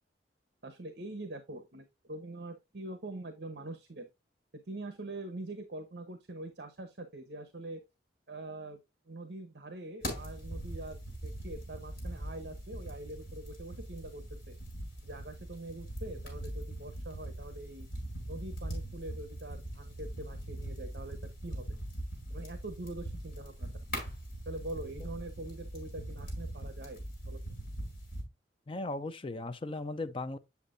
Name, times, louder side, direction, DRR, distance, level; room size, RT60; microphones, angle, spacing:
voice 1, 0.6-4.1 4.7-7.8 8.3-8.8 9.1-14.5 15.0-17.9 18.3-21.6 22.3-23.7 24.5-27.4, right 2 dB, 60° right, 0.9 m, -44 dB
sound 1, 10.0-28.2, right 1 dB, 50° left, 4.3 m, -41 dB
voice 2, 28.7-30.4, left 2 dB, 30° left, 0.4 m, -37 dB
8.2 x 7.0 x 2.5 m
head